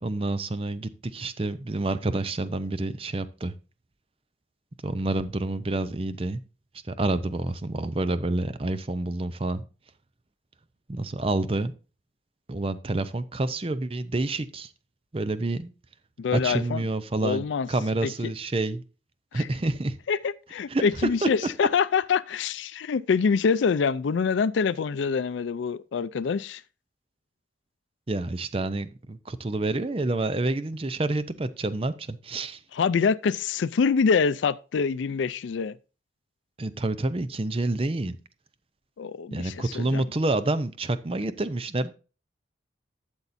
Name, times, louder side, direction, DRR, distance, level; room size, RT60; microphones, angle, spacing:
voice 1, 0.0-3.5 4.8-6.4 6.9-9.6 10.9-11.7 12.5-14.7 15.1-15.7 16.3-18.8 19.3-20.0 20.7-20.8 21.2-21.3 28.1-32.6 36.6-38.2 39.3-41.9, right 2 dB, 30° right, 0.6 m, -28 dB
voice 2, 16.2-16.8 17.2-17.7 18.0-18.1 19.3-19.5 20.1-26.6 32.7-35.8 39.0-40.0, left 5 dB, 85° left, 0.4 m, -25 dB
12.0 x 7.1 x 2.6 m
head